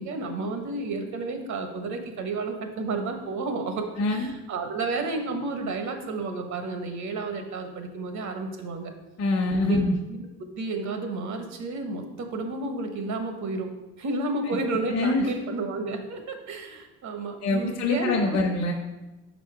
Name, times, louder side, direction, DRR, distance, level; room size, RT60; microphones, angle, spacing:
voice 1, 0.0-8.9 9.6-9.8 10.1-10.3 10.6-13.7 14.0-18.4, right 3 dB, 70° right, 5 dB, 1.0 m, -31 dB
voice 2, 4.0-4.3 9.2-9.9 14.9-15.3 17.4-18.7, left 2 dB, 55° left, -1 dB, 0.9 m, -24 dB
5.2 x 4.2 x 4.8 m, 1.0 s
cardioid pair, 90°, 30 cm